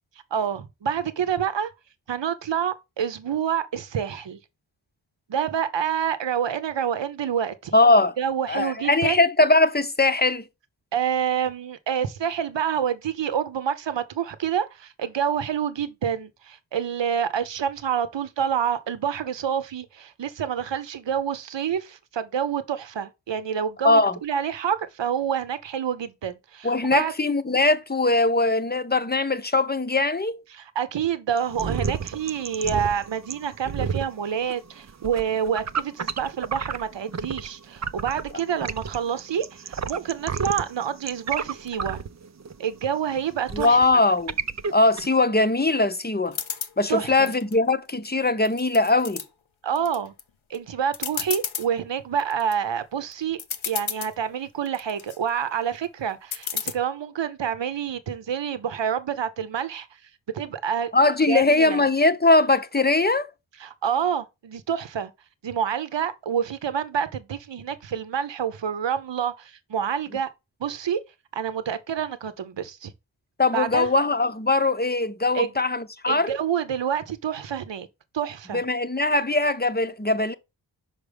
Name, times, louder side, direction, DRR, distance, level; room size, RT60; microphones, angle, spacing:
voice 1, 0.3-1.7 2.1-4.4 5.3-7.8 8.2-9.2 10.9-27.1 30.5-42.0 42.6-43.8 46.9-47.3 49.6-50.1 50.5-53.4 53.7-59.9 60.3-60.9 61.3-61.8 63.6-65.1 65.4-70.3 70.6-71.0 71.3-72.9 73.5-73.9 75.3-75.5 76.1-77.9 78.1-78.6, right 8 dB, 65° right, 0.9 m, -27 dB
voice 2, 7.7-8.1 8.5-10.4 23.8-24.2 26.6-30.4 43.5-44.3 44.7-46.4 46.8-49.2 60.9-63.3 73.4-76.3 78.5-80.3, left 2 dB, 20° left, 0.7 m, -21 dB
sound 1, 31.4-37.5 37.8-45.1, right 6 dB, 40° right, 0.5 m, -31 dB
sound 2, 46.3-46.7 47.3-48.0 48.4-49.2 49.8-50.2 50.5-50.6 50.9-51.7 52.2-52.5 53.1-53.2 53.4-54.1 54.7-55.2 56.3-56.7, left 7 dB, 80° left, 0.9 m, -31 dB
5.9 x 5.0 x 3.4 m
cardioid pair, 45°, 46 cm